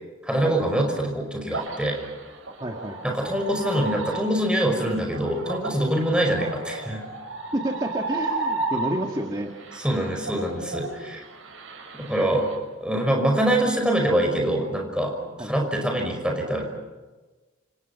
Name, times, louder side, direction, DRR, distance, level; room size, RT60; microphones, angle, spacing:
voice 1, 0.2-2.0 3.0-7.0 9.7-11.2 11.9-12.5 12.8-16.7, right 1 dB, 5° right, 2 dB, 5.6 m, -24 dB
sound 1, 1.5-9.3 9.6-12.5, right 3 dB, 85° right, 6.4 m, -33 dB
voice 2, 2.6-3.2 7.5-9.5 15.4-15.5, right 1 dB, 20° right, 2 dB, 1.8 m, -29 dB
29.5 x 27.5 x 5.9 m, 1.2 s
head